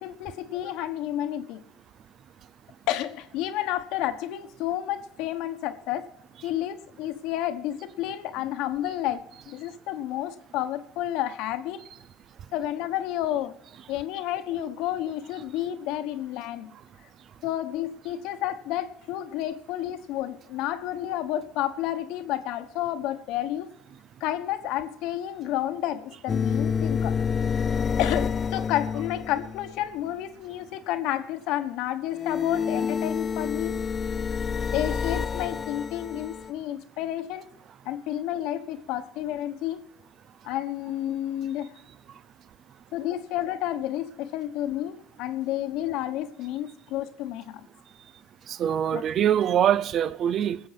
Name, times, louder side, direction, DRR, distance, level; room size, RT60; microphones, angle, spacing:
voice 1, 0.0-1.6 2.9-6.1 6.4-11.9 12.5-13.6 13.9-16.7 17.4-23.7 24.2-27.2 27.5-27.7 28.0-33.8 34.7-37.4 37.8-39.8 40.4-41.7 42.9-47.7 48.9-49.0, left 12 dB, 70° left, 1.2 m, -30 dB
sound 1, 26.3-29.8 32.1-36.5, left 6 dB, 35° left, 0.4 m, -28 dB
voice 2, 48.5-50.6, right 9 dB, 50° right, 0.6 m, -23 dB
20.0 x 7.7 x 5.9 m
supercardioid pair, 95°, 0 cm